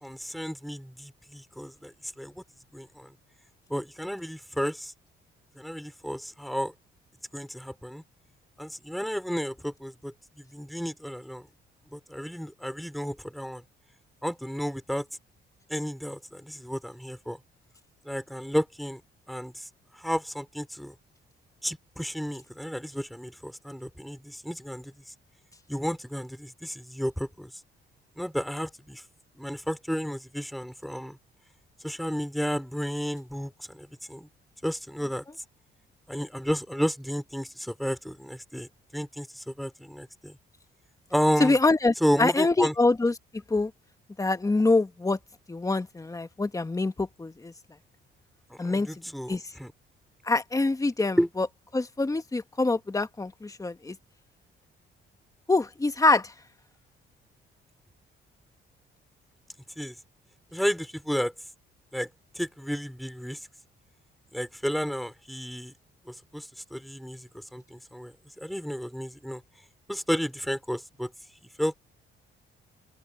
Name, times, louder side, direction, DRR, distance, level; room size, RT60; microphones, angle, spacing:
voice 1, 0.0-2.4 2.7-3.1 3.7-4.9 5.6-6.7 7.3-8.0 8.6-11.5 11.9-13.6 14.2-15.1 15.7-17.4 18.0-19.0 19.3-19.7 19.9-20.9 21.6-24.9 25.7-27.5 28.2-29.0 29.4-31.2 31.8-34.3 34.6-35.2 36.1-40.4 41.1-41.6 42.0-42.7 48.5-49.7 51.2-51.3 59.8-59.9 60.5-61.3 61.9-62.1 62.3-63.5 64.3-65.7 66.0-69.4 69.9-71.1 71.6-71.7, equal, ahead, 3.1 m, -32 dB
voice 2, 41.4-43.1 43.5-43.7 44.2-45.2 45.5-47.5 48.6-48.9 49.3-49.4 50.2-51.5 51.7-54.0 55.5-56.3, left 3 dB, 15° left, 1.4 m, -25 dB
open air
cardioid pair, 90°, 20 cm